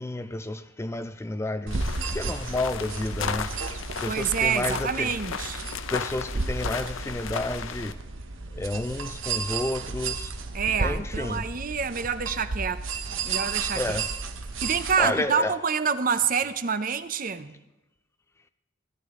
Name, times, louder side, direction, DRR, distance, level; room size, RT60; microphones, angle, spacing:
voice 1, 0.0-1.8 2.1-3.5 4.0-5.1 5.9-8.0 8.5-10.3 10.8-11.5 13.7-14.1 15.0-15.5, left 2 dB, 15° left, 11 dB, 0.4 m, -30 dB
sound 1, 1.7-7.9, left 6 dB, 70° left, 0.7 m, -35 dB
sound 2, 1.7-15.0, right 4 dB, 70° right, 1.0 m, -33 dB
voice 2, 4.1-5.6 10.5-12.8 13.2-14.0 14.6-17.5, right 6 dB, 40° right, 12 dB, 0.6 m, -27 dB
17.5 x 12.0 x 3.7 m, 0.98 s
head